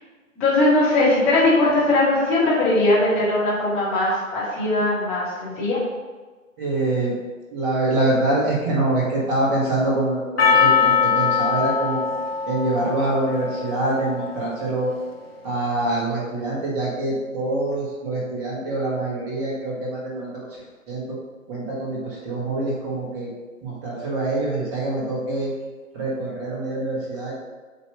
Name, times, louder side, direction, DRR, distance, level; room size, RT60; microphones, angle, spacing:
voice 1, 0.4-5.8, left 2 dB, 5° left, -12 dB, 0.6 m, -20 dB
voice 2, 6.6-7.1 7.5-12.0 12.5-14.9 15.4-20.4 20.9-21.2 21.5-23.3 23.6-25.5 25.9-27.3, right 2 dB, 15° right, -5 dB, 1.4 m, -25 dB
Percussion, 10.4-14.9, left 6 dB, 45° left, 0.8 m, -22 dB
8.2 x 2.9 x 5.3 m, 1.3 s
figure-of-eight pair, 145°, 41 cm